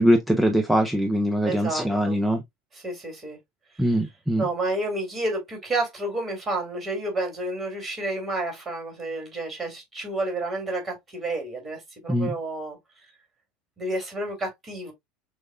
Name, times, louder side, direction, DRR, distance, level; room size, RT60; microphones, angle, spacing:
voice 1, 0.0-2.4 3.8-4.4 12.1-12.3, equal, 5° right, 0.5 m, -22 dB
voice 2, 1.4-2.2 2.7-3.4 4.4-12.8 13.8-14.9, right 2 dB, 25° right, 2.3 m, -30 dB
6.2 x 2.3 x 2.2 m
figure-of-eight pair, 75°, 0 cm